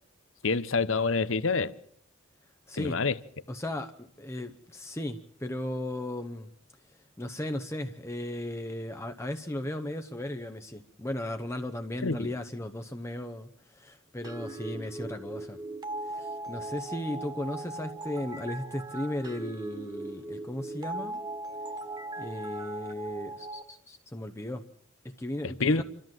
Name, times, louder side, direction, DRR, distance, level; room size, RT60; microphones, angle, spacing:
voice 1, 0.4-1.7 2.8-3.2 12.0-12.3 25.4-25.8, left 4 dB, 70° left, 0.9 m, -27 dB
voice 2, 2.7-3.0 3.5-3.9 4.2-6.5 7.2-15.6 16.0-21.2 22.2-24.6 25.0-25.8, left 1 dB, 15° left, 0.9 m, -36 dB
sound 1, 14.2-23.6, right 2 dB, 20° right, 1.7 m, -39 dB
28.0 x 13.5 x 7.6 m
head